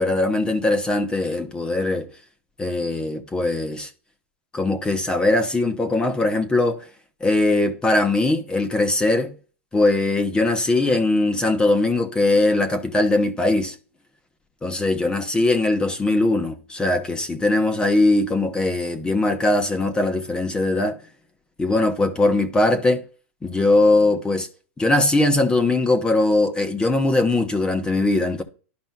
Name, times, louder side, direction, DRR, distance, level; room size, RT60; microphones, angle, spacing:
voice 1, 0.0-2.1 2.6-3.9 4.5-6.8 7.2-9.3 9.7-13.7 14.6-21.0 21.6-23.0 23.4-24.5 24.8-28.4, left 2 dB, 10° left, 0.9 m, -20 dB
12.0 x 5.2 x 2.2 m
hypercardioid pair, 125°, 7 cm